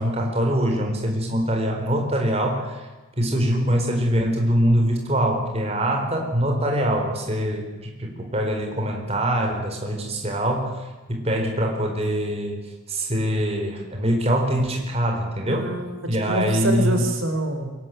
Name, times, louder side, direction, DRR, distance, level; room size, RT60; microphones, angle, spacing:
voice 1, 0.0-2.9 3.2-15.7 16.1-17.0, equal, 30° right, 2 dB, 4.3 m, -23 dB
voice 2, 15.5-17.7, right 1 dB, 65° right, 5 dB, 4.6 m, -26 dB
24.0 x 21.0 x 9.3 m, 1.2 s
head